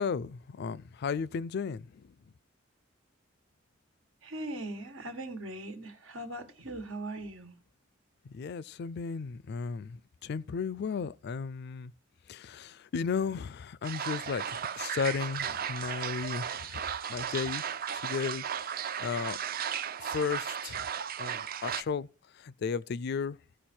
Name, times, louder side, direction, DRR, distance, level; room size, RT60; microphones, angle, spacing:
voice 1, 0.0-1.9 8.3-11.9 12.3-16.8 17.1-17.6 18.0-18.7 19.0-19.4 20.0-20.9 21.2-22.1 22.4-23.4, left 5 dB, 55° left, 0.4 m, -34 dB
voice 2, 4.2-7.5, right 1 dB, 85° right, 1.6 m, -40 dB
sound 1, 13.8-21.8, right 8 dB, 50° right, 0.5 m, -35 dB
15.0 x 5.0 x 4.4 m
head